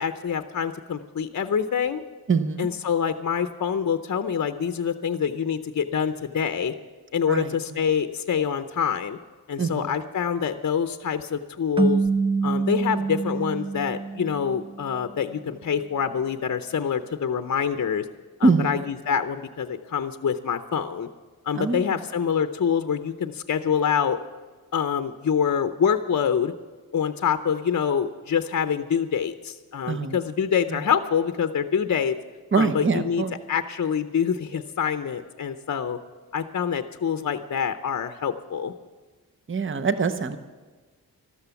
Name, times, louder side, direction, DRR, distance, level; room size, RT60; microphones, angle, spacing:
voice 1, 0.0-2.0 2.6-6.7 7.1-9.2 9.5-12.0 12.4-18.0 18.4-21.1 21.5-24.2 24.7-26.5 26.9-32.1 32.5-33.2 33.5-36.0 36.3-38.7, left 7 dB, 50° left, 9 dB, 0.7 m, -26 dB
voice 2, 2.3-2.7 7.2-7.5 9.6-9.9 18.4-18.8 21.5-22.0 29.9-30.2 30.7-30.8 32.5-33.3 39.5-40.4, right 4 dB, 30° right, 10 dB, 0.9 m, -24 dB
sound 1, 11.8-14.9, right 4 dB, 15° right, 0.4 m, -26 dB
13.0 x 13.0 x 7.0 m, 1.3 s
wide cardioid pair, 95°, 38 cm